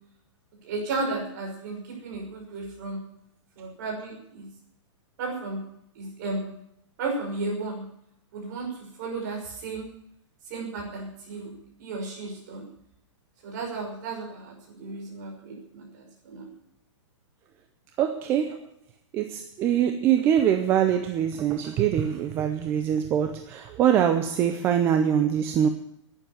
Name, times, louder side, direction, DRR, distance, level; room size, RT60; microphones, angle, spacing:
voice 1, 0.6-3.0 3.6-4.5 5.2-5.6 6.0-6.5 7.0-7.8 8.3-8.7 9.0-9.9 10.5-11.5 11.8-12.7 13.4-16.5, right 3 dB, 35° right, 1 dB, 5.8 m, -34 dB
voice 2, 18.0-18.7 19.1-25.7, right 9 dB, 15° right, 7 dB, 0.5 m, -23 dB
11.5 x 10.5 x 9.8 m, 0.72 s
hypercardioid pair, 175°, 16 cm